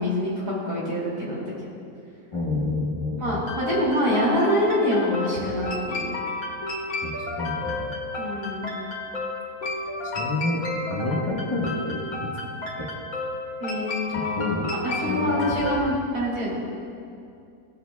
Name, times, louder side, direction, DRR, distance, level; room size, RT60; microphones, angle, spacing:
voice 1, 0.0-1.5 3.2-6.1 8.2-8.7 13.6-16.5, equal, 80° right, -6 dB, 3.3 m, -25 dB
voice 2, 2.3-3.4 7.0-7.9 10.1-10.6 10.9-12.3 12.8-12.9 14.1-14.7 15.1-15.5, left 2 dB, 20° left, -5 dB, 1.2 m, -29 dB
sound 1, 3.5-15.8, left 2 dB, 65° left, 1.8 m, -32 dB
18.0 x 7.5 x 2.3 m, 2.5 s
omnidirectional pair, 1.6 m